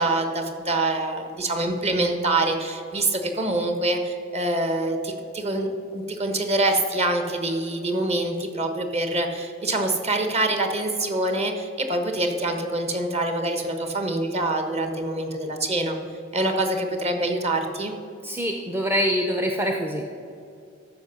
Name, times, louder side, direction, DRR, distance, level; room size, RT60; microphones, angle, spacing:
voice 1, 0.0-16.0 16.3-17.9, right 2 dB, 35° right, 5 dB, 1.2 m, -25 dB
voice 2, 18.2-20.0, equal, 10° right, 2 dB, 0.6 m, -25 dB
13.5 x 5.3 x 6.5 m, 2.6 s
head